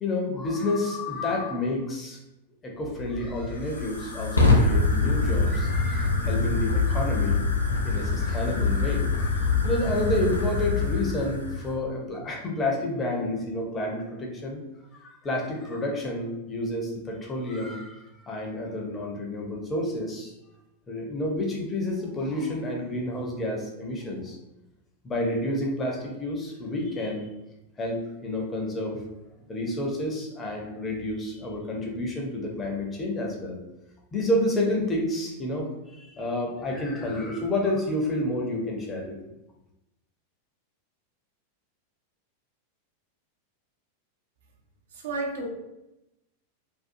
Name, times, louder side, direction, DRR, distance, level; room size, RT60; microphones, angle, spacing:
voice 1, 0.0-2.2 2.6-7.4 7.8-14.6 15.0-20.3 20.9-24.4 25.0-27.3 27.8-29.0 29.5-33.6 34.1-39.2, left 1 dB, 20° left, -1 dB, 0.6 m, -30 dB
Fire, 2.8-11.8, left 3 dB, 80° left, 0.4 m, -25 dB
voice 2, 44.9-45.5, right 2 dB, 60° right, 1 dB, 0.5 m, -31 dB
2.6 x 2.3 x 2.5 m, 0.94 s
figure-of-eight pair, 90°, 0 cm